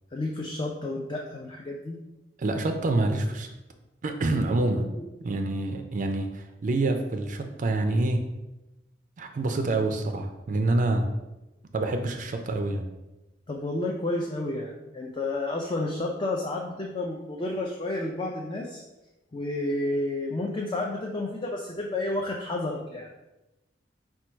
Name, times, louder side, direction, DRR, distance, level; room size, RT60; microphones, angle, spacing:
voice 1, 0.1-2.0 4.8-5.0 13.5-18.8 19.3-23.1, left 2 dB, 25° left, 0 dB, 0.4 m, -31 dB
voice 2, 2.4-3.5 4.0-4.9 5.2-8.2 9.2-11.1 11.7-12.8, right 2 dB, 45° right, 5 dB, 0.4 m, -26 dB
4.4 x 2.3 x 4.4 m, 1.0 s
head